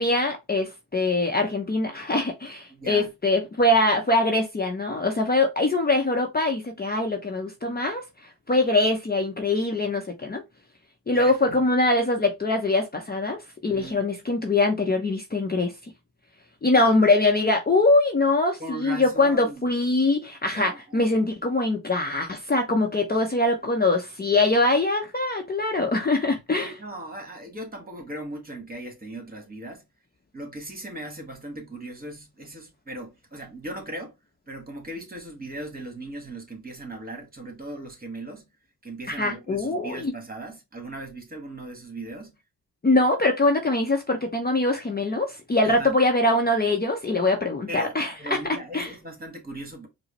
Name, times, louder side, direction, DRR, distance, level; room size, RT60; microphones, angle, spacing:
voice 1, 0.0-8.0 8.5-10.4 11.1-13.4 13.6-15.7 16.6-26.7 39.1-40.1 42.8-48.9, left 2 dB, 25° left, 0.7 m, -23 dB
voice 2, 2.7-3.1 11.1-11.6 13.7-14.0 16.7-16.9 18.6-19.7 20.5-21.0 26.5-29.8 30.3-34.1 34.5-38.5 38.8-42.4 45.6-45.9 47.7-49.9, right 1 dB, 25° right, 1.6 m, -38 dB
4.6 x 2.1 x 3.0 m
cardioid pair, 65°, 39 cm